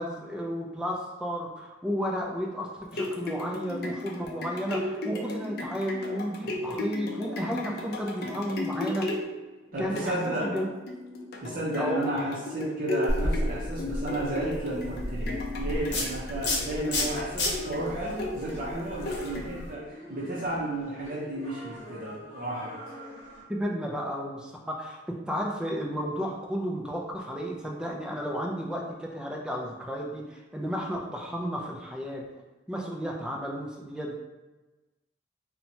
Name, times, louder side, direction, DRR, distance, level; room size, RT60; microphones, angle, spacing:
voice 1, 0.0-9.1 9.8-10.7 11.8-12.0 23.5-32.2 32.7-34.2, equal, 5° right, -1 dB, 0.3 m, -33 dB
sound 1, 2.7-19.8 20.3-20.4, left 2 dB, 60° left, 0.4 m, -36 dB
voice 2, 9.7-10.5 11.4-22.7, right 1 dB, 50° right, -7 dB, 0.6 m, -32 dB
sound 2, 13.1-19.7, left 1 dB, 85° left, 0.8 m, -32 dB
sound 3, 16.3-23.4, equal, 45° left, 0.9 m, -45 dB
2.9 x 2.1 x 2.7 m, 1.1 s
head